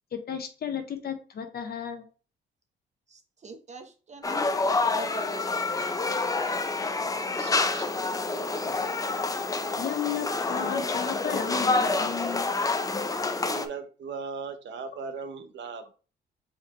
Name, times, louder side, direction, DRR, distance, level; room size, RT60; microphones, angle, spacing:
voice 1, 0.1-2.1 9.8-12.5, left 8 dB, 50° left, 7 dB, 1.0 m, -33 dB
voice 2, 3.1-5.5, right 4 dB, 35° right, 5 dB, 0.9 m, -43 dB
sound 1, 4.2-13.7, left 3 dB, 15° left, 0.5 m, -28 dB
voice 3, 8.4-8.9 13.5-15.9, right 5 dB, 70° right, 9 dB, 0.8 m, -38 dB
4.3 x 3.8 x 3.1 m, 0.36 s
cardioid pair, 90°, 20 cm